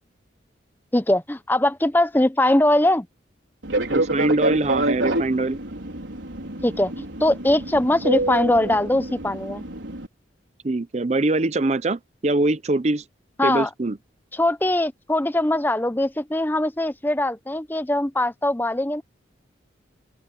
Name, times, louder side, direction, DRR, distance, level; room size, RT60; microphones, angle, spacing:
voice 1, 0.9-3.1 6.6-9.6 13.4-13.7 14.3-19.0, left 1 dB, 10° left, 0.6 m, -21 dB
Fixed-wing aircraft airplane, 3.6-10.1, right 2 dB, 85° right, 4.8 m, -27 dB
voice 2, 3.9-5.6 10.6-13.0 13.4-14.0, right 2 dB, 35° right, 0.6 m, -23 dB
open air
head